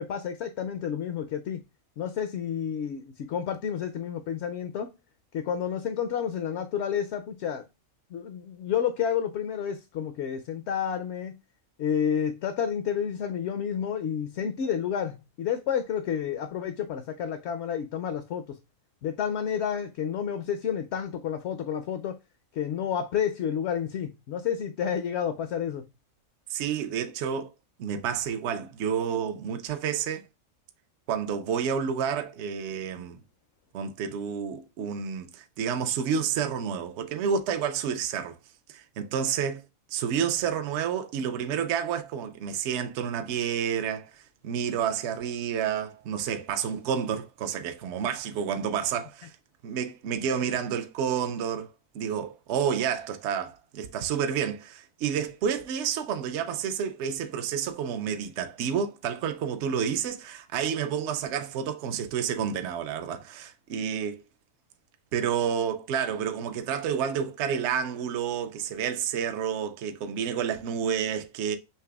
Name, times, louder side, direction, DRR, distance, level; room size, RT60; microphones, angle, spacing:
voice 1, 0.0-1.6 2.0-4.9 5.3-7.7 8.1-11.4 11.8-18.6 19.0-22.2 22.5-25.9, left 8 dB, 65° left, 0.8 m, -30 dB
voice 2, 26.5-27.5 27.8-30.2 31.1-33.2 33.7-38.4 38.7-39.6 39.9-49.3 49.6-51.7 51.9-64.2 65.1-71.6, right 7 dB, 65° right, 0.8 m, -30 dB
5.8 x 3.3 x 2.3 m
omnidirectional pair, 1.4 m